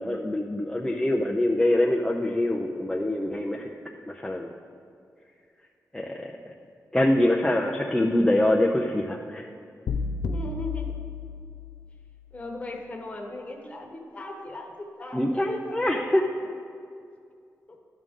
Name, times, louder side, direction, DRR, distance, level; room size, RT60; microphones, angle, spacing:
voice 1, 0.0-3.7 4.1-4.5 5.9-6.3 6.9-9.4 15.1-16.2, left 1 dB, 10° left, -2 dB, 0.5 m, -24 dB
sound 1, 9.9-12.1, left 4 dB, 70° left, 0.3 m, -32 dB
voice 2, 10.2-10.9 12.3-16.5 17.7-17.8, left 1 dB, 25° left, 1 dB, 1.1 m, -39 dB
11.5 x 6.3 x 3.7 m, 2.4 s
wide cardioid pair, 135°, 6 cm